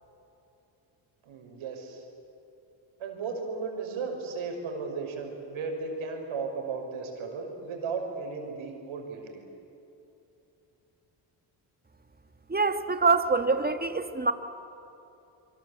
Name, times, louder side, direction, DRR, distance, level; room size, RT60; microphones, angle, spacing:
voice 1, 1.2-2.0 3.0-9.4, right 4 dB, 70° right, 2 dB, 5.9 m, -35 dB
voice 2, 12.5-14.3, right 4 dB, 20° right, 9 dB, 1.8 m, -25 dB
26.5 x 23.5 x 8.2 m, 2.8 s
cardioid pair, 80°, 50 cm